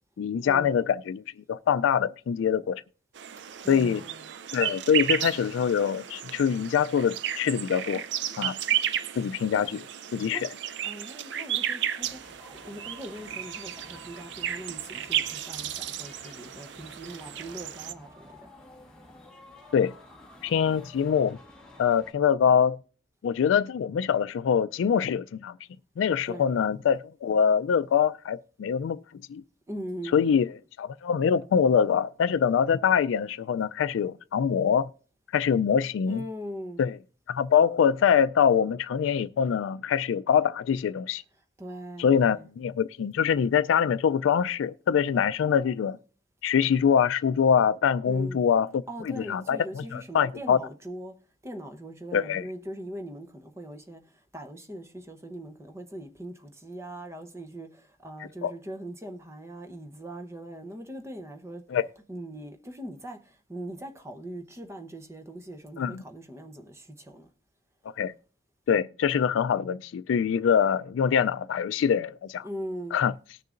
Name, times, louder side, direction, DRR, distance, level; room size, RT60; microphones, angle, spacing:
voice 1, 0.2-2.8 3.7-4.0 4.5-8.0 8.4-8.6 9.2-9.9 10.1-10.5 19.7-19.9 20.4-21.4 21.8-22.8 23.2-25.6 26.0-29.0 29.3-29.4 30.1-30.5 30.8-34.9 35.3-36.2 36.8-37.0 37.3-41.2 42.0-46.0 46.4-48.7 49.0-50.6 52.1-52.4 58.4-58.5 61.7-61.8 65.8-66.0 68.0-68.1 68.7-72.5 72.9-73.1, left 7 dB, 85° left, 0.3 m, -24 dB
sound 1, 3.1-17.9, right 10 dB, 65° right, 0.4 m, -33 dB
voice 2, 3.6-4.3 10.3-10.5 10.8-18.3 26.3-26.5 29.7-30.4 36.1-36.8 41.6-42.5 48.0-48.4 48.9-51.1 51.4-61.6 62.1-67.3 72.4-73.0, right 1 dB, 15° right, 0.8 m, -41 dB
sound 2, 12.0-22.1, left 2 dB, 5° left, 1.4 m, -51 dB
19.0 x 6.6 x 2.5 m
head